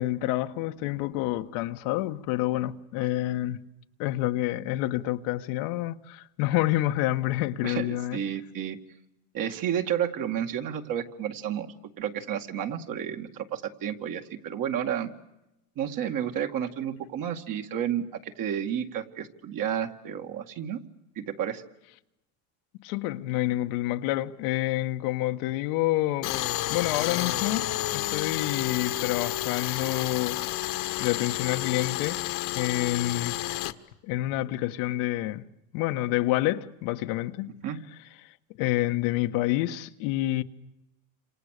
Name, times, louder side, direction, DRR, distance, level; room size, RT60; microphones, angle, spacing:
voice 1, 0.0-3.6 4.0-8.2 22.8-26.4 26.7-27.6 27.9-30.4 31.0-32.2 32.5-33.4 34.1-35.4 35.7-37.5 38.6-40.4, left 15 dB, 80° left, 1.5 m, -28 dB
voice 2, 7.6-8.8 9.3-15.1 15.8-20.8 21.2-21.6 37.6-37.8, right 9 dB, 50° right, 2.4 m, -31 dB
Tools, 26.2-33.7, left 16 dB, 65° left, 1.6 m, -30 dB
30.0 x 27.0 x 6.8 m
supercardioid pair, 120°, 42 cm